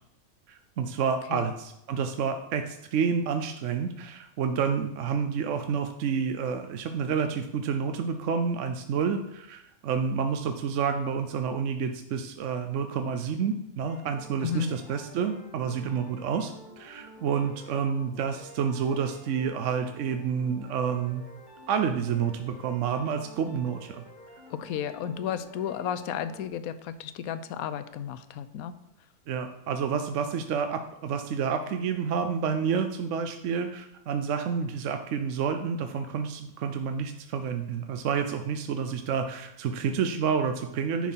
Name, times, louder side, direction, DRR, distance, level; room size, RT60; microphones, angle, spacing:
voice 1, 0.5-21.2 21.7-24.0 29.3-41.1, right 6 dB, 65° right, 6 dB, 0.9 m, -29 dB
sound 1, 13.8-26.5, equal, 30° left, 1.7 m, -50 dB
voice 2, 14.4-14.7 24.5-28.7, left 8 dB, 75° left, 12 dB, 1.0 m, -33 dB
10.0 x 4.7 x 5.6 m, 0.83 s
omnidirectional pair, 1.6 m